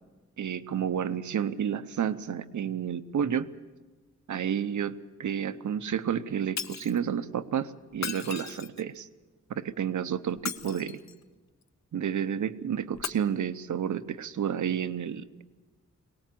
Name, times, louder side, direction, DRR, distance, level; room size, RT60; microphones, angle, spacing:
voice 1, 0.4-3.5 4.3-9.1 9.6-11.0 11.9-15.4, right 8 dB, 80° right, 13 dB, 0.9 m, -30 dB
Shatter, 6.6-7.0 7.9-9.0 10.3-11.2 12.9-13.1, left 7 dB, 65° left, 0.9 m, -36 dB
22.0 x 18.5 x 7.6 m, 1.2 s
wide cardioid pair, 110°, 29 cm